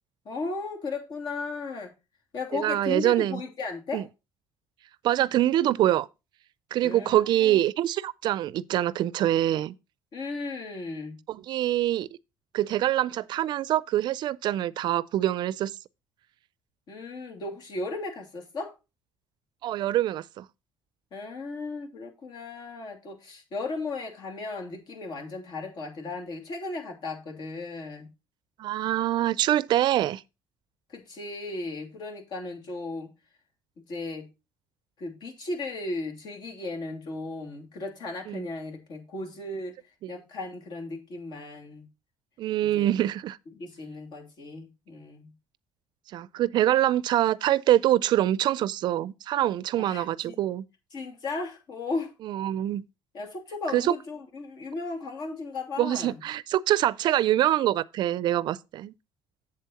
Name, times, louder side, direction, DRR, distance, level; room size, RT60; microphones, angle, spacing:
voice 1, 0.2-1.9 2.3-4.1 6.8-7.6 10.1-11.2 16.9-18.7 21.1-28.1 30.9-33.1 33.9-34.3 35.0-39.8 40.1-41.9 42.6-42.9 43.6-45.3 49.8-50.4 50.9-52.1 53.1-56.2, left 3 dB, 55° left, 2.8 m, -36 dB
voice 2, 2.5-3.4 3.9-4.0 5.0-6.1 6.7-9.7 11.3-12.1 12.5-15.7 19.6-20.4 28.6-30.2 38.3-38.4 40.0-40.1 42.4-43.4 46.1-50.6 52.2-52.8 53.7-53.9 55.8-58.9, right 13 dB, 60° right, 0.4 m, -25 dB
7.7 x 7.5 x 4.2 m
cardioid pair, 125°, 9 cm